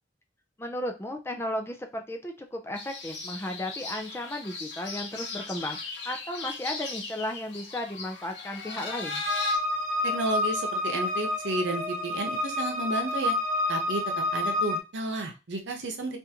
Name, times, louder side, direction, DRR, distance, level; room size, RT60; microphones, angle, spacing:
voice 1, 0.6-9.2, left 1 dB, 15° left, 4 dB, 0.4 m, -35 dB
sound 1, 2.7-9.6, left 4 dB, 75° left, 0.9 m, -37 dB
sound 2, 9.3-14.8, left 2 dB, 40° right, 0.6 m, -29 dB
voice 2, 10.0-13.3 13.7-14.0 14.3-16.2, right 2 dB, 80° right, 3 dB, 0.8 m, -32 dB
3.5 x 2.6 x 2.8 m, 0.28 s
head